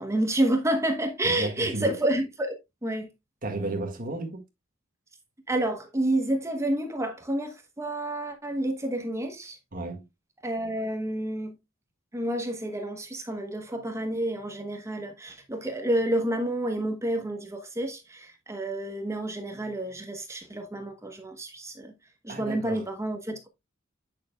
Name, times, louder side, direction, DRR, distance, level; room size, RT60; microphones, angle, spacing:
voice 1, 0.0-3.1 5.5-9.6 10.4-11.6 12.1-21.9 22.2-23.4, right 1 dB, 15° right, 1.0 m, -29 dB
voice 2, 1.2-2.0 3.4-4.4 9.7-10.0 22.3-22.9, right 2 dB, 45° right, 1.7 m, -33 dB
9.0 x 6.3 x 2.2 m
head